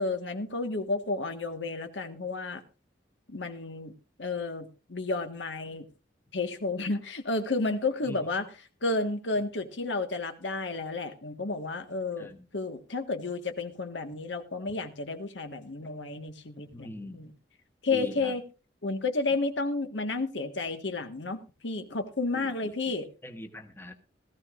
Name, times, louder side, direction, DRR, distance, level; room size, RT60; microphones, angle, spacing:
voice 1, 0.0-2.6 3.3-3.9 4.2-5.8 6.3-8.5 8.8-17.3 17.8-18.4 18.8-23.1, left 3 dB, 75° left, 7 dB, 1.5 m, -32 dB
voice 2, 16.7-17.2 17.9-18.3 22.3-22.5 23.2-23.9, equal, 15° left, 6 dB, 1.2 m, -41 dB
18.0 x 14.0 x 2.5 m, 0.32 s
head